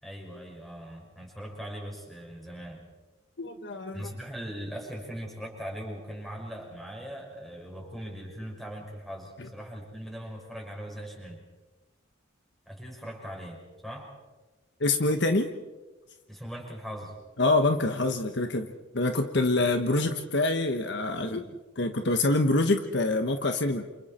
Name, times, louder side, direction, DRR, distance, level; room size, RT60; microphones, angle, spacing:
voice 1, 0.0-2.9 3.9-11.4 12.7-14.1 16.3-17.2, equal, ahead, -1 dB, 5.8 m, -40 dB
voice 2, 3.4-4.1 9.4-9.5 14.8-15.5 17.4-18.7 18.9-21.5 21.8-23.8, left 2 dB, 55° left, 6 dB, 1.2 m, -26 dB
28.5 x 28.5 x 4.4 m, 1.2 s
head